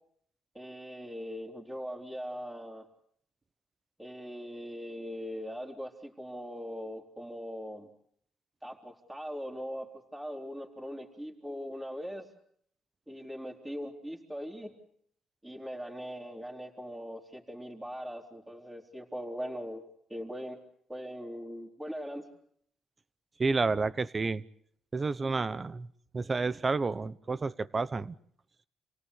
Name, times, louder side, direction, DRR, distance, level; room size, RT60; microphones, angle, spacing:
voice 1, 0.5-2.9 4.0-7.9 8.6-12.3 13.1-14.7 15.4-19.8 20.1-20.6 20.9-22.3, equal, 10° right, 0 dB, 3.7 m, -40 dB
voice 2, 23.4-24.4 24.9-25.9 26.1-28.1, right 4 dB, 30° right, 16 dB, 1.0 m, -30 dB
28.5 x 18.0 x 8.3 m, 0.67 s
cardioid pair, 90°, 0 cm